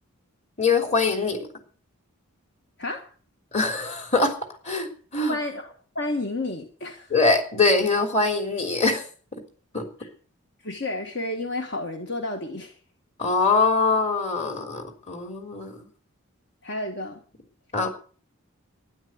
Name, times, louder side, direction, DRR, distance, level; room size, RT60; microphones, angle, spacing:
voice 1, 0.6-1.5 3.5-4.4 4.6-5.4 7.1-9.0 9.7-9.8 13.2-15.9 17.7-17.9, left 3 dB, 30° left, 4 dB, 3.3 m, -23 dB
voice 2, 2.8-3.1 5.3-7.1 10.0-10.1 10.6-12.7 16.6-17.2, left 2 dB, 55° left, 4 dB, 1.6 m, -31 dB
12.5 x 10.5 x 8.1 m, 0.42 s
head